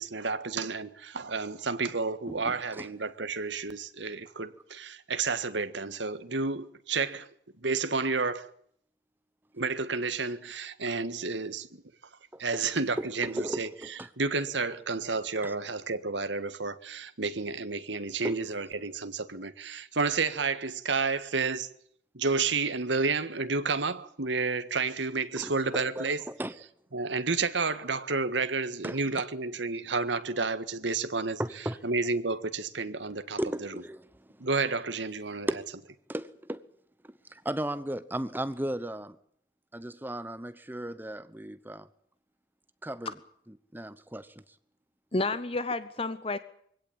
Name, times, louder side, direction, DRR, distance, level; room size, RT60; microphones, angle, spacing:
voice 1, 0.0-7.3 7.6-8.5 9.5-11.7 12.4-21.7 22.1-26.2 26.9-31.4 31.8-33.7 34.4-35.5, right 4 dB, 80° right, 1.6 m, -31 dB
voice 2, 2.3-2.9 12.3-12.4 13.0-14.1 15.4-15.6 18.2-18.4 25.4-26.1 26.4-26.5 28.8-29.0 31.4-31.8 33.4-34.1 35.5-35.6 36.1-36.6 37.3-39.2 39.7-41.9 42.8-43.1 43.7-44.3, right 1 dB, 10° right, 0.9 m, -35 dB
voice 3, 45.1-46.4, left 3 dB, 30° left, 0.9 m, -30 dB
23.5 x 17.0 x 8.8 m
head